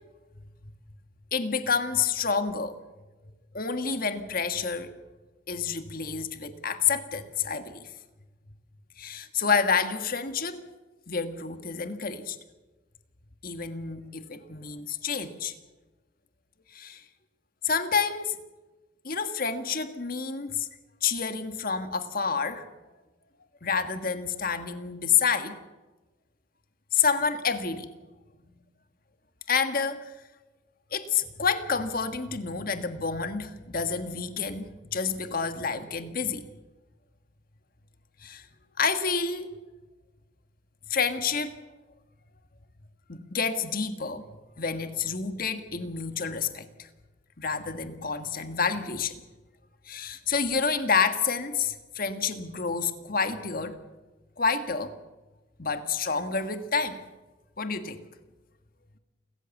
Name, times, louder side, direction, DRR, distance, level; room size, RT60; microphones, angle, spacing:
voice 1, 1.3-2.8 3.5-4.9 5.5-7.9 9.0-10.6 11.1-12.4 13.4-15.5 16.7-17.0 17.6-18.4 19.0-20.7 21.0-22.6 23.6-25.6 26.9-27.9 29.5-30.1 30.9-36.4 38.2-38.5 38.8-39.6 40.9-41.5 43.1-44.2 44.6-46.9 47.4-49.2 49.9-53.8 54.4-54.9 55.6-57.1 57.6-58.0, left 5 dB, 45° left, 9 dB, 1.6 m, -29 dB
28.5 x 14.0 x 7.2 m, 1.2 s
head